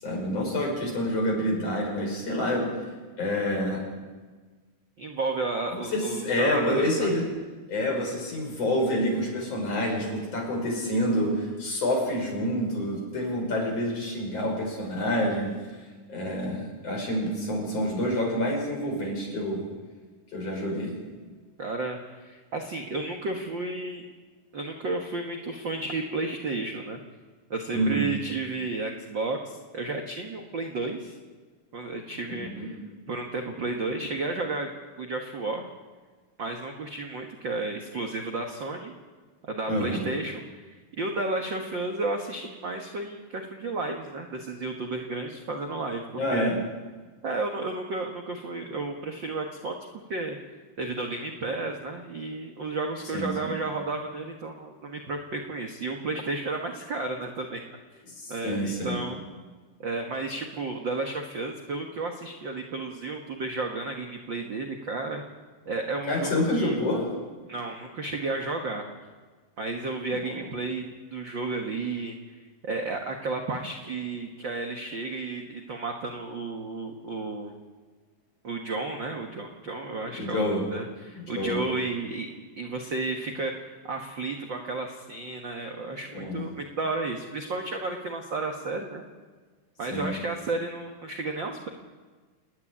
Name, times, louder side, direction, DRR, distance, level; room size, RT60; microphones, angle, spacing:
voice 1, 0.0-2.7 3.2-3.8 5.7-7.2 7.7-15.8 16.1-19.6 20.3-21.0 27.7-28.0 32.3-32.7 39.7-40.0 46.2-46.6 53.1-53.5 58.2-59.0 66.1-67.0 70.1-70.4 80.0-80.6 81.2-81.6 86.1-86.5 89.9-90.1, left 1 dB, 40° left, 0 dB, 6.3 m, -28 dB
voice 2, 5.0-7.1 21.6-24.0 24.5-27.0 27.5-31.1 31.7-32.8 33.1-35.7 36.4-38.9 39.4-46.6 47.2-49.8 50.1-50.4 50.8-57.6 58.3-59.2 59.8-65.2 65.6-66.8 67.5-68.9 69.6-77.5 78.4-80.4 80.7-82.3 82.6-89.0 89.8-91.7, right 3 dB, 55° right, 3 dB, 1.3 m, -32 dB
29.0 x 10.0 x 9.9 m, 1.4 s
omnidirectional pair, 4.3 m